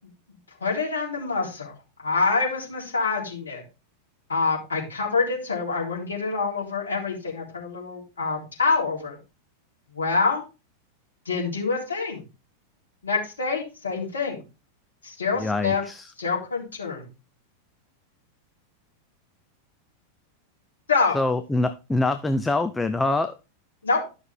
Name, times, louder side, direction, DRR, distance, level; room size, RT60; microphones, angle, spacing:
voice 1, 0.6-3.6 4.3-9.2 9.9-10.4 11.3-12.2 13.0-14.4 15.0-15.8 16.2-17.1 20.9-21.2 23.8-24.0, left 4 dB, 70° left, 3.7 m, -26 dB
voice 2, 15.4-16.1 21.1-23.3, left 2 dB, 10° left, 0.6 m, -24 dB
12.0 x 6.0 x 3.5 m
figure-of-eight pair, 90°, 0 cm